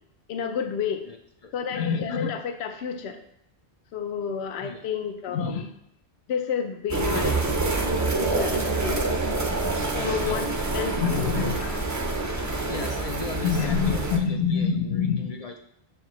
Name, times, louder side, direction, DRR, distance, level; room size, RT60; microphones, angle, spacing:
voice 1, 0.3-1.1 1.5-3.2 3.9-5.7 6.3-7.6 8.1-9.1 9.9-10.5 10.7-11.8 13.4-15.3, left 6 dB, 75° left, 6 dB, 0.9 m, -28 dB
sound 1, 6.9-14.2, right 2 dB, 25° right, 0.4 m, -26 dB
voice 2, 9.8-10.9 12.6-15.6, left 4 dB, 60° left, 4 dB, 0.4 m, -39 dB
6.5 x 4.7 x 3.1 m, 0.73 s
omnidirectional pair, 1.1 m